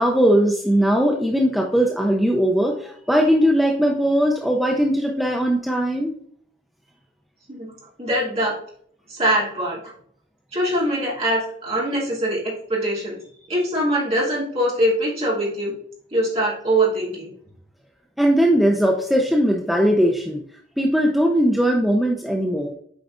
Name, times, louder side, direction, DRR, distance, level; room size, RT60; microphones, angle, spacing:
voice 1, 0.0-6.1 18.2-20.4 20.8-22.7, equal, ahead, 0 dB, 0.4 m, -19 dB
voice 2, 8.0-8.6 9.1-9.9 10.5-13.2 13.5-15.7 16.1-17.3, right 1 dB, 35° right, -6 dB, 2.8 m, -23 dB
8.6 x 4.6 x 2.5 m, 0.63 s
head